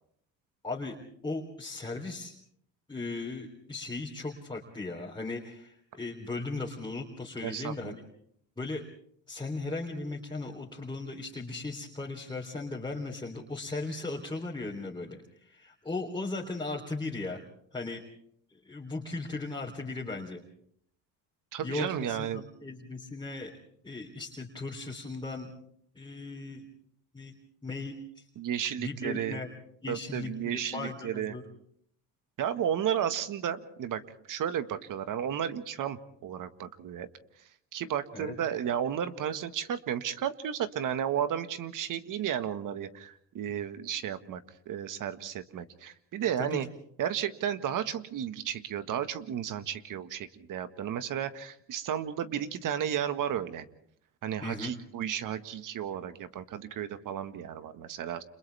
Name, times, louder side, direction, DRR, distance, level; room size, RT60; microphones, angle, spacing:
voice 1, 0.6-1.0 1.2-2.3 2.9-8.0 8.6-8.8 9.3-17.4 17.7-18.0 18.5-20.4 21.6-23.5 23.8-25.5 26.0-26.7 27.1-27.3 27.6-28.2 28.8-29.5 29.8-31.4 38.1-38.4 46.4-46.6 54.4-54.7, left 3 dB, 10° left, -2 dB, 3.6 m, -37 dB
voice 2, 7.4-8.0 21.5-22.4 28.4-29.4 29.9-31.3 32.4-34.0 34.3-37.1 37.7-46.7 47.0-53.6 54.2-58.2, right 9 dB, 60° right, 10 dB, 1.7 m, -33 dB
29.5 x 27.5 x 3.5 m, 0.68 s
supercardioid pair, 85°, 37 cm